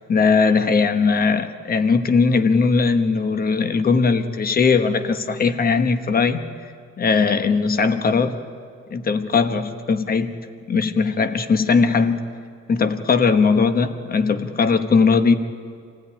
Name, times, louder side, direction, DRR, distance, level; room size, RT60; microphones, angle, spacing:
voice 1, 0.1-6.4 7.0-8.4 8.9-10.3 10.7-12.2 12.7-15.3, left 4 dB, 30° left, 9 dB, 1.1 m, -19 dB
26.5 x 16.5 x 9.9 m, 2.3 s
cardioid pair, 160°, 31 cm